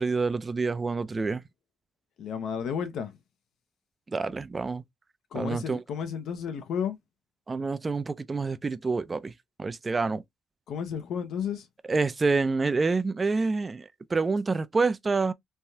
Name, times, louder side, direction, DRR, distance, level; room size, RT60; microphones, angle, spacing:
voice 1, 0.0-1.4 4.1-4.8 5.3-5.8 7.5-9.3 9.6-10.2 11.9-15.3, right 4 dB, 30° right, 0.4 m, -27 dB
voice 2, 2.2-3.1 5.3-7.0 10.7-11.7, left 7 dB, 75° left, 0.6 m, -32 dB
3.3 x 2.3 x 2.7 m
cardioid pair, 90°, 0 cm